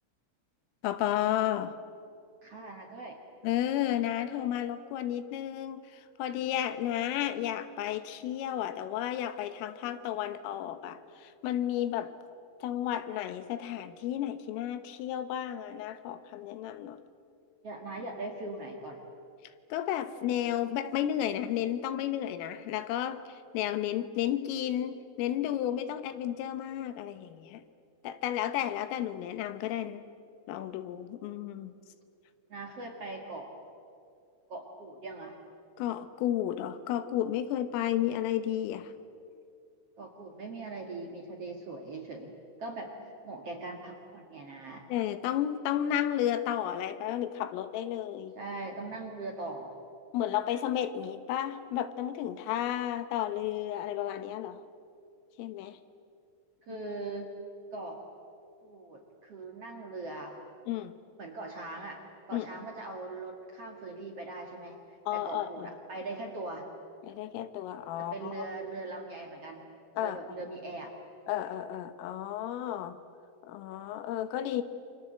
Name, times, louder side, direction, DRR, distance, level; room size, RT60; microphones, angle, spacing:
voice 1, 0.8-1.8 3.4-12.1 12.6-17.0 19.7-27.6 28.0-30.0 30.5-31.7 35.8-38.9 44.9-48.4 50.1-54.6 55.4-55.8 60.7-60.9 62.3-62.5 65.1-65.7 67.0-68.5 70.0-70.2 71.3-73.0 73.4-74.6, left 11 dB, 85° left, 11 dB, 3.8 m, -32 dB
voice 2, 2.4-3.2 17.6-19.0 32.5-33.5 34.5-35.4 40.0-42.3 42.6-43.0 43.2-44.9 48.3-49.7 56.6-57.3 57.7-58.0 58.6-60.4 61.2-62.0 62.3-66.7 68.0-69.7 70.0-70.9, right 2 dB, 55° right, 1 dB, 1.8 m, -41 dB
29.0 x 25.0 x 8.0 m, 2.5 s
omnidirectional pair, 5.7 m